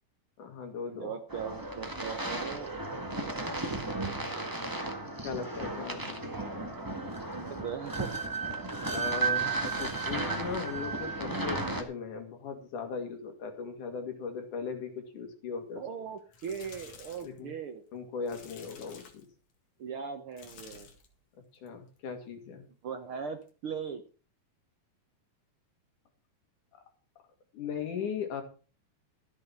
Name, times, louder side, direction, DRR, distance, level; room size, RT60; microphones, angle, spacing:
voice 1, 0.4-1.1 5.2-6.2 8.9-15.8 17.2-17.5 17.9-19.3 21.6-22.6 27.5-28.4, left 6 dB, 80° left, 4 dB, 3.8 m, -38 dB
voice 2, 0.9-2.8 3.2-3.3 7.3-8.1 15.7-17.8 19.8-20.9 22.8-24.0, right 7 dB, 60° right, 7 dB, 1.6 m, -39 dB
sound 1, 1.3-11.8, right 3 dB, 15° right, 0.8 m, -34 dB
sound 2, 16.2-17.4 18.3-19.3 20.3-21.2 21.6-21.9 23.4-23.5, left 5 dB, 60° left, 3.1 m, -52 dB
13.5 x 8.5 x 5.8 m, 0.36 s
omnidirectional pair, 3.5 m